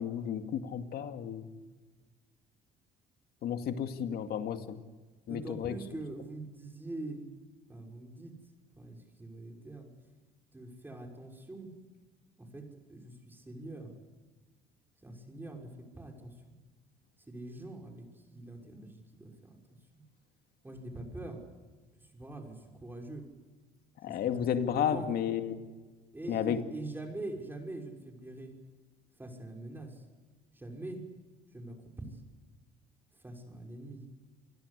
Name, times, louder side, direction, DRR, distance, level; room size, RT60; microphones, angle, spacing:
voice 1, 0.0-1.5 3.4-4.8 5.3-5.8 24.0-25.6 26.3-26.6, left 9 dB, 65° left, 8 dB, 2.2 m, -32 dB
voice 2, 5.3-7.2 7.7-8.3 8.7-9.9 10.5-11.7 12.4-13.9 15.0-16.5 17.2-20.0 20.6-21.4 22.0-23.2 24.1-25.1 26.1-28.6 29.2-30.0 30.5-31.0 31.5-32.2 33.2-34.0, right 2 dB, 10° right, 3 dB, 5.7 m, -44 dB
27.5 x 21.5 x 8.3 m, 1.3 s
cardioid pair, 110°, 17 cm